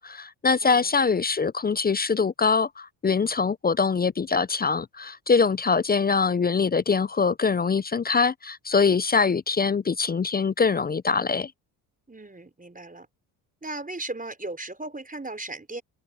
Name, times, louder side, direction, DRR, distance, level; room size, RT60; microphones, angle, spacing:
voice 1, 0.0-11.5, left 5 dB, 20° left, 0.5 m, -23 dB
voice 2, 12.1-13.1 13.6-15.8, right 2 dB, 15° right, 5.3 m, -36 dB
supercardioid pair, 65°, 47 cm